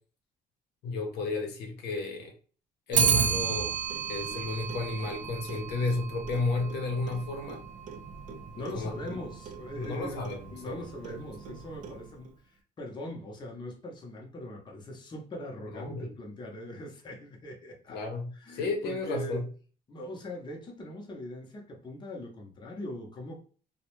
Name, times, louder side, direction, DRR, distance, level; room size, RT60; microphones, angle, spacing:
voice 1, 0.8-2.3 2.9-3.7 4.1-7.6 8.7-8.9 9.7-11.2 15.7-16.1 17.9-19.4, left 3 dB, 75° left, 0.7 m, -33 dB
Clock, 2.9-12.3, right 7 dB, 50° right, 0.4 m, -33 dB
voice 2, 8.5-18.0 18.3-19.4 19.9-23.4, left 1 dB, 25° left, 0.7 m, -41 dB
2.2 x 2.1 x 3.0 m
cardioid pair, 110°, 17 cm